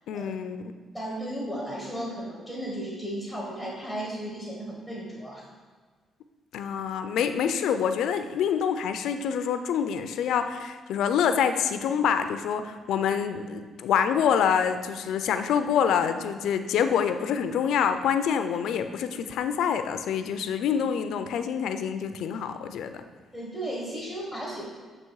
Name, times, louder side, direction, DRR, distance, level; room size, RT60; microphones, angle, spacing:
voice 1, 0.1-0.7 6.5-23.0, left 7 dB, 80° left, 9 dB, 0.4 m, -26 dB
voice 2, 0.9-5.5 23.3-24.7, right 1 dB, 15° right, -3 dB, 1.3 m, -35 dB
7.7 x 3.0 x 4.6 m, 1.5 s
cardioid pair, 90°, 0 cm